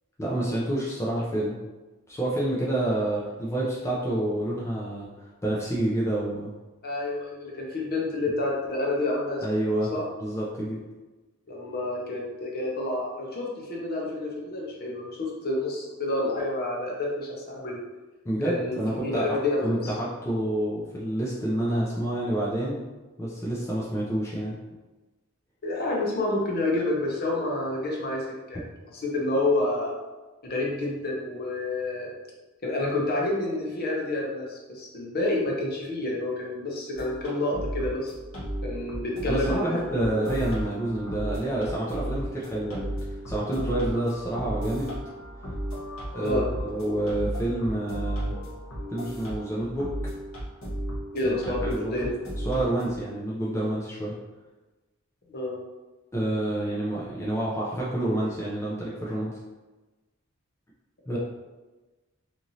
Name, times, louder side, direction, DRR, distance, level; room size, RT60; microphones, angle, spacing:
voice 1, 0.2-1.6 2.1-5.1 5.4-6.5 9.4-9.9 10.2-10.8 18.2-22.8 23.2-24.6 39.3-45.0 46.1-48.4 48.9-49.9 51.2-52.1 52.4-54.2 56.1-59.3 61.1-61.2, right 1 dB, 15° left, -6 dB, 0.4 m, -28 dB
voice 2, 6.8-9.4 9.9-10.0 11.5-17.3 17.5-17.8 18.4-19.9 25.6-28.6 28.9-29.9 30.4-32.1 32.6-38.1 38.6-40.0 46.2-46.4 51.1-52.2 55.3-55.6 61.1-61.2, left 2 dB, 45° left, -3 dB, 0.7 m, -29 dB
sound 1, 37.0-53.0, equal, 90° left, 1.0 m, -34 dB
3.0 x 2.5 x 2.7 m, 1.2 s
head